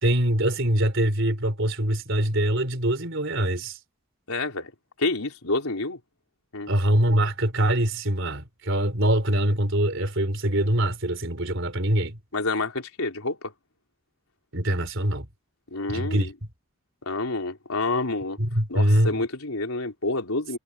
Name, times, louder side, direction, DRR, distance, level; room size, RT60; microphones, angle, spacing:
voice 1, 0.0-3.8 6.7-12.2 14.5-15.3 15.9-16.3 18.4-19.1, right 1 dB, 60° right, 3.9 m, -23 dB
voice 2, 4.3-4.7 5.0-6.0 6.5-6.7 12.3-13.5 15.7-16.3 17.0-18.4 18.7-20.6, left 2 dB, 80° left, 3.8 m, -28 dB
head